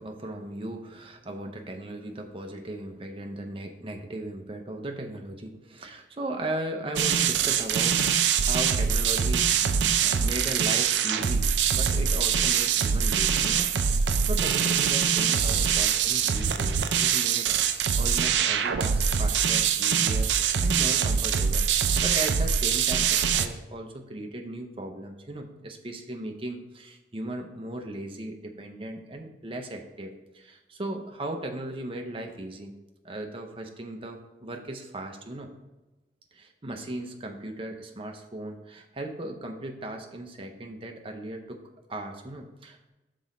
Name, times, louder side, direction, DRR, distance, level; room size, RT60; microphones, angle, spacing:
voice 1, 0.0-11.5 11.7-17.6 17.9-32.7 33.0-35.5 36.3-41.6 41.9-42.9, right 1 dB, 30° right, 4 dB, 0.6 m, -37 dB
sound 1, 7.0-23.5, right 7 dB, 75° right, 0.4 m, -24 dB
6.0 x 4.2 x 4.9 m, 1.1 s
head